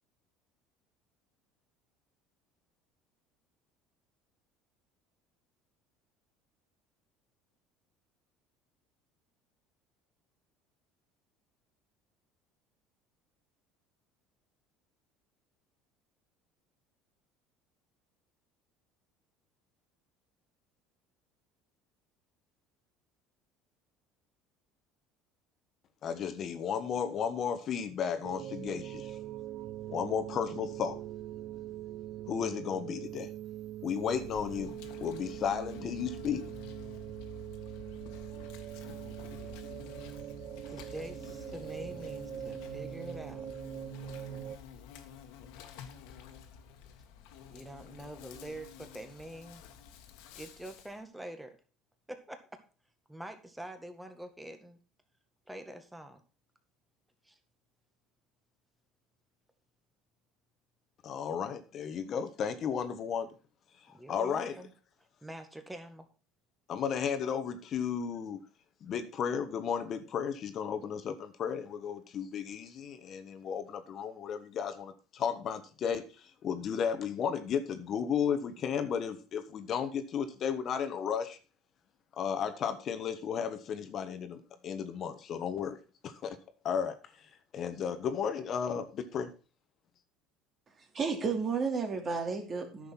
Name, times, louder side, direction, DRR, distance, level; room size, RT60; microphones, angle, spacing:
voice 1, 26.0-29.2 29.9-31.0 32.3-33.3 33.8-34.7 35.0-36.4 61.0-63.3 63.9-64.5 66.7-68.4 68.8-81.4 82.2-85.8 86.0-86.4 86.6-87.3 87.5-89.3, left 7 dB, 45° left, 9 dB, 1.2 m, -34 dB
sound 1, 28.2-44.6, right 12 dB, 50° right, 0.7 m, -42 dB
Insect, 33.9-51.0, left 6 dB, 80° left, 1.7 m, -50 dB
voice 2, 40.7-43.8 47.5-49.6 50.4-51.6 52.1-52.6 53.1-54.8 55.5-56.2 57.2-57.4 63.9-64.7 65.2-66.1, right 1 dB, 5° right, 7 dB, 1.9 m, -45 dB
voice 3, 90.9-92.9, right 5 dB, 35° right, 5 dB, 2.7 m, -32 dB
10.0 x 6.7 x 5.7 m, 0.35 s
supercardioid pair, 110°, 0 cm